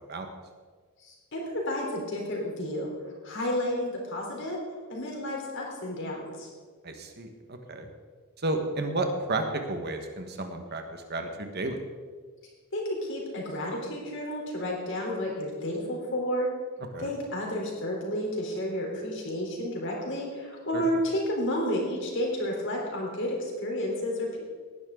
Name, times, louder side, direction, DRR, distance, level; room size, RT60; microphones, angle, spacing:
voice 1, 1.0-2.9 3.2-4.6 4.9-6.5 12.7-16.5 17.0-24.4, left 1 dB, 60° left, -1 dB, 3.9 m, -31 dB
voice 2, 6.8-7.9 8.4-11.8 16.9-17.1 20.7-20.8, right 2 dB, 50° right, 5 dB, 1.5 m, -32 dB
18.0 x 10.5 x 3.9 m, 1.5 s
head